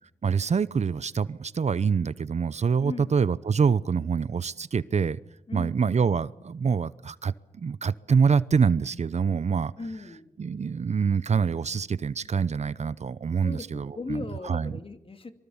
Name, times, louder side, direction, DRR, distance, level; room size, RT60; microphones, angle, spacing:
voice 1, 0.2-5.2 5.5-9.7 10.4-14.8, right 6 dB, 55° right, 0.8 m, -25 dB
voice 2, 2.8-3.2 5.5-6.1 9.8-10.3 13.4-15.3, left 3 dB, 40° left, 2.6 m, -38 dB
25.0 x 23.5 x 7.2 m
cardioid pair, 60°, 14 cm